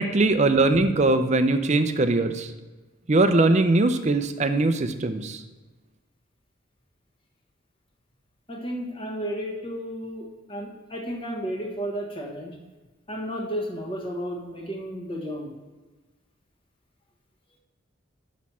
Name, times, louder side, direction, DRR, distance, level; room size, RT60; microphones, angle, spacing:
voice 1, 0.0-2.5 3.1-5.4, right 2 dB, 35° right, 9 dB, 0.5 m, -21 dB
voice 2, 8.5-12.6 13.1-15.5, equal, 25° left, 0 dB, 1.3 m, -33 dB
6.3 x 6.1 x 5.5 m, 1.2 s
head